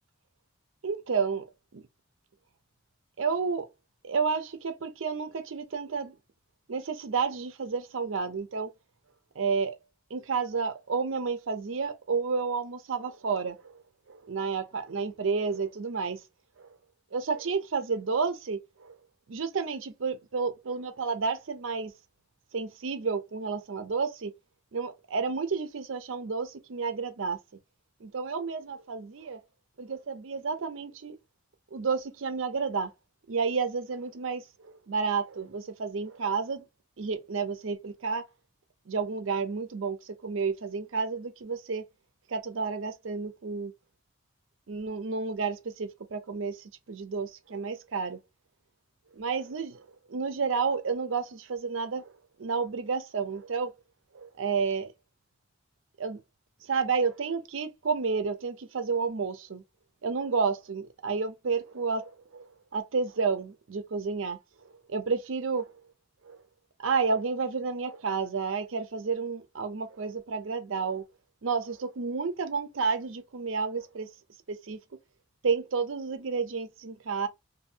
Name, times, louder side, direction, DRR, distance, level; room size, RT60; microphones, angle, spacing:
voice 1, 0.8-1.5 1.7-1.8 3.2-3.7 4.0-6.2 6.7-8.7 9.4-9.8 10.1-13.8 14.1-16.2 16.6-16.8 17.1-19.0 19.3-21.9 22.5-24.3 24.7-27.4 28.0-29.4 29.8-31.2 31.7-32.9 33.3-36.6 37.0-38.3 38.9-41.9 42.3-43.7 44.7-48.2 49.2-52.1 52.4-53.7 54.1-54.9 56.0-56.2 56.6-59.6 60.0-65.7 66.2-66.4 66.8-71.0 71.4-74.1 74.5-74.8 75.4-77.3, right 5 dB, 85° right, 0.6 m, -31 dB
2.7 x 2.6 x 2.5 m
head